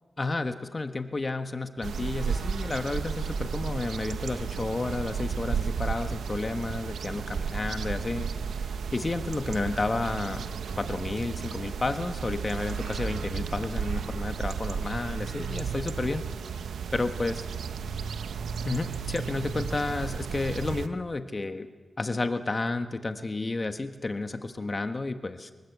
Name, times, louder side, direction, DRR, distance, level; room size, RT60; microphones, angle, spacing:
voice 1, 0.2-10.4 10.8-16.2 16.9-17.4 18.6-21.7 22.0-25.5, left 3 dB, 35° left, 8 dB, 1.5 m, -31 dB
sound 1, 1.8-20.9, right 6 dB, 90° right, 1.0 m, -33 dB
25.0 x 19.5 x 8.2 m, 1.3 s
cardioid pair, 70°, 0 cm